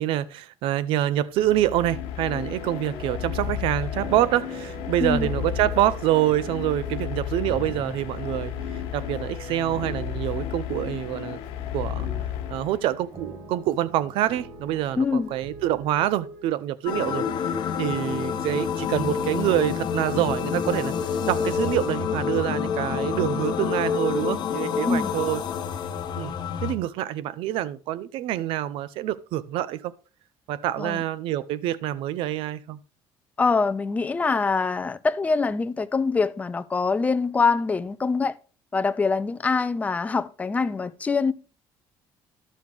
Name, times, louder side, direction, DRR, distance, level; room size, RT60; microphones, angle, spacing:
voice 1, 0.0-11.4 11.7-12.1 12.5-17.3 17.8-25.4 26.1-26.4 26.6-29.9 30.5-32.8, right 13 dB, 75° right, 0.5 m, -26 dB
sound 1, 1.4-13.1, left 10 dB, 85° left, 1.3 m, -33 dB
sound 2, 2.3-16.4, right 2 dB, 45° right, 2.1 m, -43 dB
voice 2, 5.0-5.3 15.0-15.3 24.8-25.1 30.8-31.0 33.4-38.4 38.7-41.3, left 4 dB, 15° left, 0.4 m, -24 dB
sound 3, 16.9-26.7, left 7 dB, 55° left, 1.0 m, -27 dB
11.0 x 6.4 x 3.5 m
cardioid pair, 120°, 9 cm